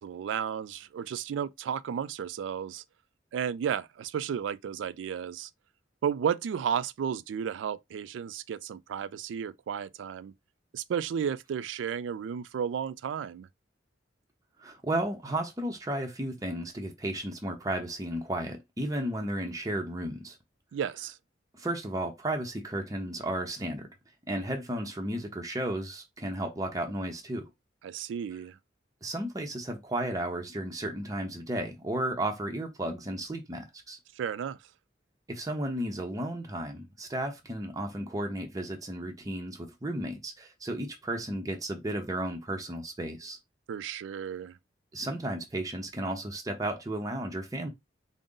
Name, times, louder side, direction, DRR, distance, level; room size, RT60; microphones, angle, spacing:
voice 1, 0.0-2.8 3.3-5.5 6.0-10.3 10.7-13.5 20.7-21.2 27.8-28.6 34.2-34.6 43.7-44.6, right 8 dB, 85° right, 0.3 m, -33 dB
voice 2, 14.6-20.4 21.5-23.9 24.3-27.5 29.0-34.0 35.3-43.4 44.9-47.7, right 1 dB, 20° right, 0.6 m, -33 dB
3.7 x 2.1 x 3.7 m
head